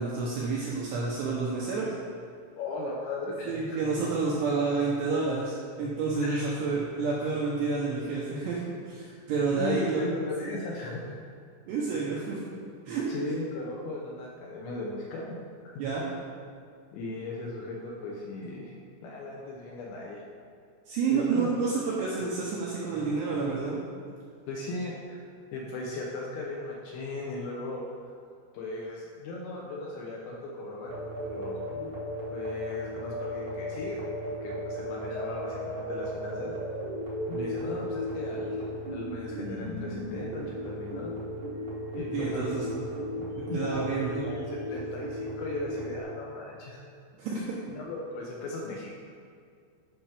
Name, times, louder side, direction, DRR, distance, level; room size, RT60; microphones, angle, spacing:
voice 1, 0.0-1.9 3.5-10.0 10.4-10.5 11.7-12.4 12.9-13.1 15.8-16.0 20.9-23.8 31.8-31.9 42.1-42.6 43.5-44.2 47.2-47.4, right 4 dB, 80° right, -5 dB, 2.5 m, -29 dB
voice 2, 2.5-3.8 6.2-6.6 9.5-11.1 13.1-15.4 15.6-15.8 16.9-18.7 19.0-20.2 21.1-21.7 24.5-25.2 25.5-28.1 28.5-30.9 31.2-31.6 32.3-34.0 34.2-36.5 37.3-41.1 41.9-42.7 43.2-44.0 44.2-46.8 47.7-48.9, left 2 dB, 80° left, -2 dB, 2.7 m, -37 dB
sound 1, 30.9-46.0, equal, 50° right, 1.3 m, -35 dB
11.5 x 5.8 x 3.4 m, 2.2 s
omnidirectional pair, 5.9 m